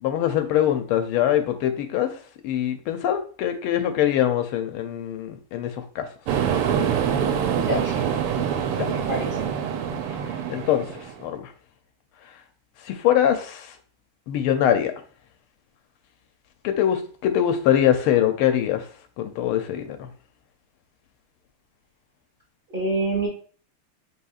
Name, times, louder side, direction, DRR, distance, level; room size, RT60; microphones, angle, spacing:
voice 1, 0.0-2.1 2.4-6.1 8.7-8.9 10.5-10.9 11.2-11.5 12.8-13.7 14.3-14.9 16.6-18.8 19.2-20.1, left 10 dB, 80° left, 1.5 m, -23 dB
sound 1, 6.3-11.2, right 8 dB, 90° right, 1.6 m, -25 dB
voice 2, 7.5-8.2 8.8-9.5 22.7-23.3, right 2 dB, 30° right, 1.4 m, -27 dB
5.5 x 3.5 x 2.4 m
omnidirectional pair, 2.4 m